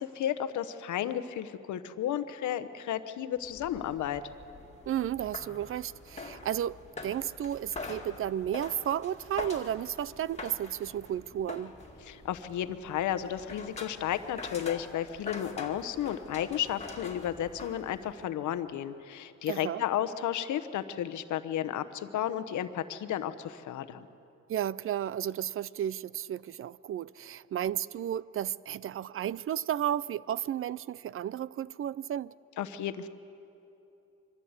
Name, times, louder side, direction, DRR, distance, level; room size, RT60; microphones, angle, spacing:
voice 1, 0.0-4.2 12.0-24.1 32.6-33.1, left 10 dB, 75° left, 1.0 m, -33 dB
sound 1, 3.4-18.3, left 3 dB, 20° left, 2.1 m, -45 dB
voice 2, 4.9-6.8 7.0-11.7 19.5-19.8 24.5-32.3, right 10 dB, 45° right, 0.4 m, -33 dB
23.5 x 14.5 x 8.1 m
cardioid pair, 90°, 30 cm